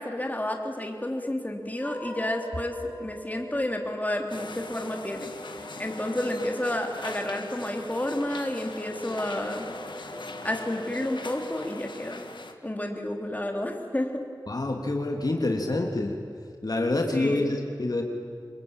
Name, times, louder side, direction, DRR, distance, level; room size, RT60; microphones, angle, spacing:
voice 1, 0.0-5.3 5.8-9.7 10.4-12.3 12.6-14.2 17.1-17.5, left 1 dB, 20° left, 3 dB, 3.4 m, -30 dB
sound 1, 1.8-12.3, right 1 dB, 10° right, 4.9 m, -44 dB
sound 2, 4.3-12.5, left 3 dB, 80° left, 1.8 m, -41 dB
voice 2, 14.5-16.1 16.6-18.0, left 2 dB, 55° left, 2 dB, 2.9 m, -27 dB
26.5 x 21.5 x 8.9 m, 2.2 s
wide cardioid pair, 45°, 8 cm